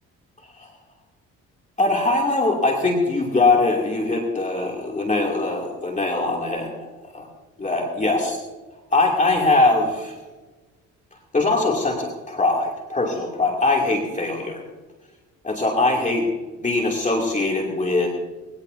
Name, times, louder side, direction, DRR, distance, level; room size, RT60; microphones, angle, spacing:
voice 1, 1.8-6.7 7.1-7.3 7.6-8.4 8.9-10.2 11.3-14.6 15.4-16.3 16.6-18.1, left 2 dB, 25° left, -1 dB, 2.7 m, -21 dB
21.5 x 17.5 x 2.7 m, 1.3 s
cardioid pair, 90°, 30 cm